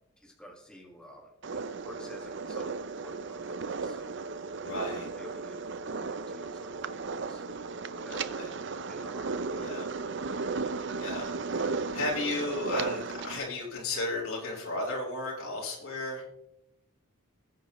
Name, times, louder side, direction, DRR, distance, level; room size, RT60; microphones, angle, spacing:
voice 1, 0.2-4.2 5.2-5.6 5.9-7.4 7.9-9.3 10.3-10.6, equal, 5° left, -1 dB, 1.7 m, -51 dB
sound 1, 1.4-13.4, right 4 dB, 55° right, 0.6 m, -35 dB
voice 2, 4.5-5.1 8.1-8.5 9.5-9.9 11.0-16.2, left 2 dB, 75° left, -3 dB, 5.2 m, -34 dB
20.5 x 9.3 x 3.1 m, 0.85 s
head